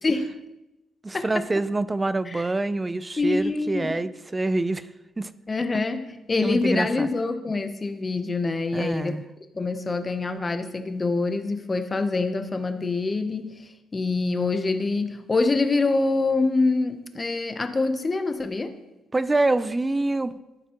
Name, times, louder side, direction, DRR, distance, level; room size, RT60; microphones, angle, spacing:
voice 1, 0.0-0.3 1.1-1.4 2.3-2.4 3.2-3.9 5.5-9.1 9.5-13.6 13.9-18.7, left 3 dB, 25° left, 9 dB, 0.7 m, -25 dB
voice 2, 1.0-4.9 5.2-5.3 6.4-7.1 8.7-9.2 19.1-20.3, right 2 dB, 15° right, 15 dB, 0.4 m, -26 dB
14.0 x 5.9 x 2.9 m, 1.0 s
cardioid pair, 115°, 0 cm